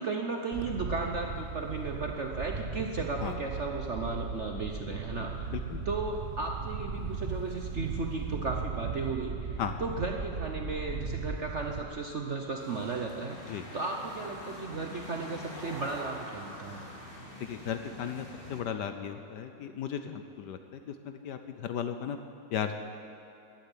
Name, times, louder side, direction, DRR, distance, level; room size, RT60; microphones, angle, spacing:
voice 1, 0.0-5.3 5.8-16.8, right 3 dB, 50° right, 2 dB, 0.9 m, -35 dB
Wind, 0.5-11.8, right 5 dB, 90° right, 0.5 m, -37 dB
voice 2, 5.5-5.8 9.6-9.7 13.4-13.7 17.4-22.2 22.5-22.8, left 8 dB, 65° left, 8 dB, 1.2 m, -36 dB
sound 1, 12.6-18.6, equal, 25° left, 2.3 m, -45 dB
14.5 x 8.8 x 10.0 m, 2.9 s
omnidirectional pair, 2.2 m